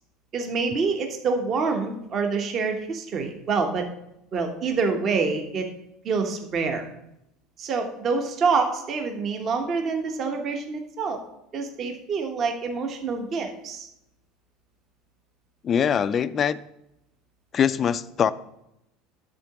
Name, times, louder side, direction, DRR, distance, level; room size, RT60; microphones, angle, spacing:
voice 1, 0.3-3.9 4.3-5.7 6.0-6.8 7.6-11.2 11.5-13.9, right 4 dB, 40° right, 4 dB, 1.1 m, -26 dB
voice 2, 15.6-16.6 17.5-18.3, left 8 dB, 35° left, 15 dB, 0.3 m, -22 dB
10.5 x 3.8 x 5.9 m, 0.83 s
supercardioid pair, 130°, 0 cm